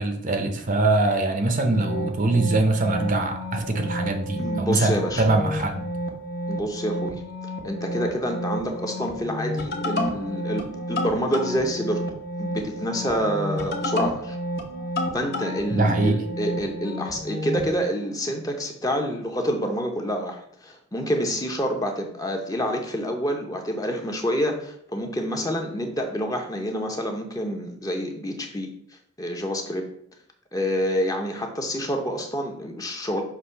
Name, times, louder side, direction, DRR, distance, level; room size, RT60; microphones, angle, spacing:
voice 1, 0.0-5.9 15.7-16.2, right 2 dB, 35° right, 6 dB, 0.7 m, -23 dB
sound 1, 1.6-17.7, left 1 dB, 45° left, 1.0 m, -31 dB
voice 2, 4.4-5.2 6.5-7.2 7.6-14.4 15.1-28.7 29.2-29.8 30.5-33.2, equal, 15° left, 3 dB, 0.7 m, -27 dB
6.0 x 3.0 x 5.6 m, 0.68 s
head